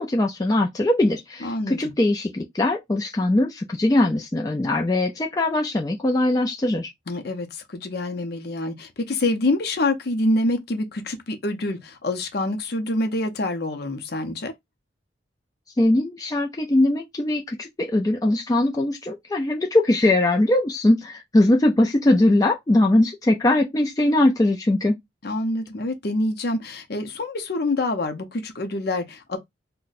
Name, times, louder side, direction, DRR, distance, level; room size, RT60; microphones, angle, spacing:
voice 1, 0.0-6.9 15.8-25.0, left 1 dB, 20° left, 0.4 m, -21 dB
voice 2, 1.4-1.8 7.1-14.5 25.2-29.4, left 2 dB, 55° left, 0.6 m, -26 dB
2.6 x 2.1 x 3.9 m
head